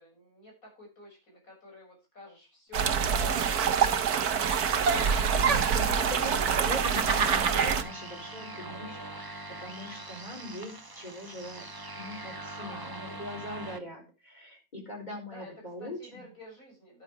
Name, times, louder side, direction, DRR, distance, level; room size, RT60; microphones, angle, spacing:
voice 1, 0.0-5.7 9.6-10.1 12.4-13.2 15.3-17.0, left 1 dB, 65° left, -1 dB, 7.3 m, -52 dB
sound 1, 2.7-7.8, right 7 dB, 85° right, 1.6 m, -26 dB
Giggle, 3.4-4.2 4.5-6.0 6.5-7.8, right 5 dB, 50° right, 1.6 m, -29 dB
sound 2, 4.4-13.8, right 1 dB, 15° right, 0.9 m, -42 dB
voice 2, 5.4-9.2 9.6-11.7 11.9-16.2, left 1 dB, 30° left, -1 dB, 4.9 m, -41 dB
11.5 x 9.0 x 4.8 m, 0.28 s
omnidirectional pair, 1.6 m